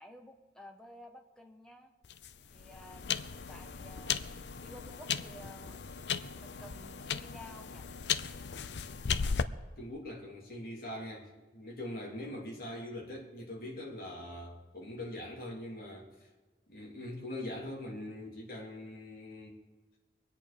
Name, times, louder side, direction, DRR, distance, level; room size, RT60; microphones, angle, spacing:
voice 1, 0.0-1.9 2.5-4.2 4.6-5.8 6.4-7.9, equal, 5° left, 3 dB, 1.2 m, -52 dB
sound 1, 2.0-9.4, left 6 dB, 80° left, 0.6 m, -36 dB
voice 2, 9.8-16.3 16.7-19.6, left 1 dB, 55° left, -2 dB, 3.1 m, -42 dB
23.5 x 8.8 x 5.2 m, 1.3 s
head